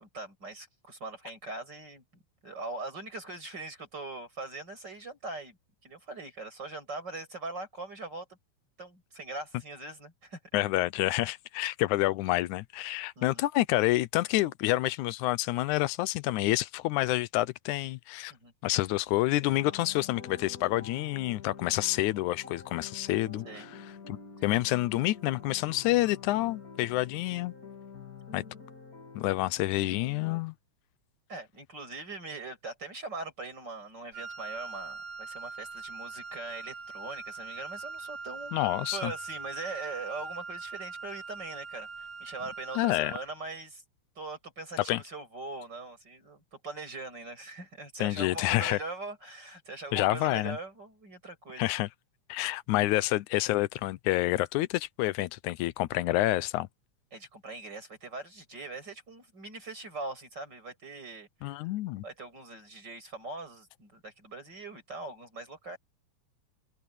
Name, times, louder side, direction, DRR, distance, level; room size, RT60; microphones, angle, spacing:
voice 1, 0.0-2.0 2.4-5.6 5.8-8.3 8.8-10.4 13.2-13.4 18.3-18.5 23.4-23.7 31.3-38.5 38.9-43.8 44.2-51.7 57.1-61.7 62.0-65.8, right 3 dB, 35° right, 7.3 m, -41 dB
voice 2, 10.5-18.3 18.6-23.7 24.1-27.5 28.3-28.4 29.2-30.5 38.5-39.1 42.8-43.1 44.9-45.0 48.0-48.8 49.9-50.6 51.6-51.9 52.3-56.7 61.4-62.0, left 17 dB, 85° left, 2.2 m, -28 dB
sound 1, 19.4-30.4, left 5 dB, 30° left, 3.6 m, -47 dB
Wind instrument woodwind instrument, 34.1-43.4, right 4 dB, 90° right, 7.5 m, -42 dB
omnidirectional pair, 3.4 m